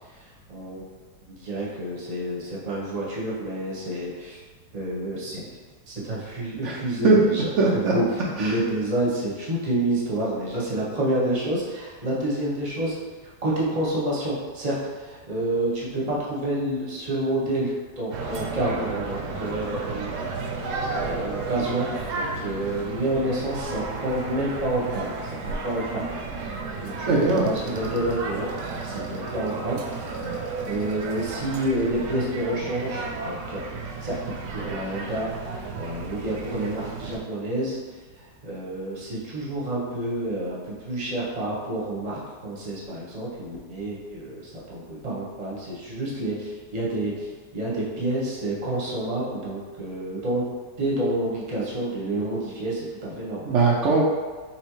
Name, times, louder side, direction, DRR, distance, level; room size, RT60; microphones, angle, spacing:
voice 1, 0.2-0.9 1.3-4.4 4.7-5.6 5.9-7.5 7.9-13.0 13.4-20.1 20.4-20.5 20.9-25.1 25.4-26.0 26.8-30.2 30.6-33.6 34.0-34.2 34.5-50.4 50.8-53.6, right 1 dB, 30° right, -6 dB, 0.7 m, -29 dB
voice 2, 7.0-7.9 8.4-8.5 27.1-27.5 53.4-54.1, right 3 dB, 90° right, -4 dB, 0.6 m, -20 dB
sound 1, 18.1-37.2, right 3 dB, 70° right, 1.0 m, -33 dB
4.3 x 3.8 x 3.0 m, 1.4 s
omnidirectional pair, 2.0 m